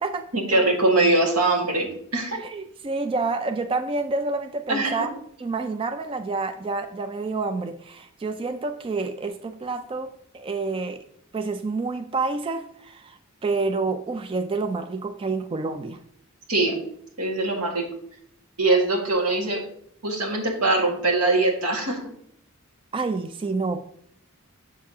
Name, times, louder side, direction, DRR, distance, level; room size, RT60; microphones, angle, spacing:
voice 1, 0.3-2.4 4.7-5.0 16.5-16.8 17.2-17.9 18.6-19.6 20.0-22.0, right 2 dB, 90° right, 1 dB, 1.8 m, -22 dB
voice 2, 2.4-5.1 5.4-11.0 11.3-16.0 22.9-23.8, right 3 dB, 25° right, 8 dB, 0.3 m, -28 dB
7.1 x 6.6 x 2.8 m, 0.68 s
head